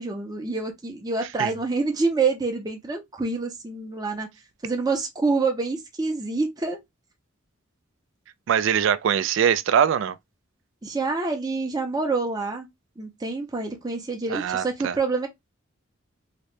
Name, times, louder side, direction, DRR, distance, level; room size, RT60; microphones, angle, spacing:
voice 1, 0.0-4.3 4.6-6.8 10.8-12.7 13.0-15.3, right 3 dB, 20° right, 0.6 m, -27 dB
voice 2, 8.5-10.2 14.3-15.0, right 8 dB, 60° right, 0.3 m, -22 dB
2.9 x 2.7 x 3.2 m
head